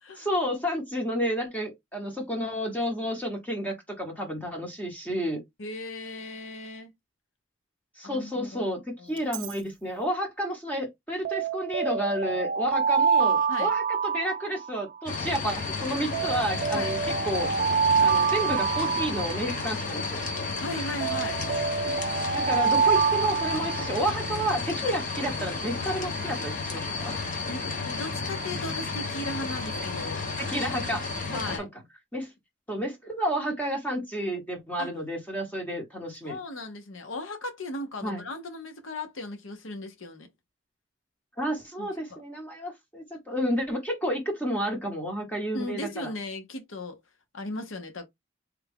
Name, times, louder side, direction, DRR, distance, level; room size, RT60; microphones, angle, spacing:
voice 1, 0.2-5.4 8.0-17.0 17.2-17.5 18.0-20.2 22.3-27.1 30.5-31.0 31.3-31.7 32.1-32.3 32.7-36.4 38.0-38.2 41.4-46.1, equal, 10° left, 0.8 m, -31 dB
voice 2, 5.6-6.9 8.0-9.3 13.5-13.7 16.7-16.9 20.6-21.4 27.5-30.3 31.3-31.7 34.8-34.9 36.2-40.3 41.8-42.2 45.5-47.0 47.3-48.1, left 2 dB, 85° left, 0.9 m, -37 dB
Alarm, 9.2-9.5 11.2-15.0 16.1-19.9 21.0-24.2, right 6 dB, 40° right, 0.3 m, -26 dB
sound 1, 15.1-31.6, left 3 dB, 40° left, 0.9 m, -32 dB
3.5 x 2.3 x 3.4 m
head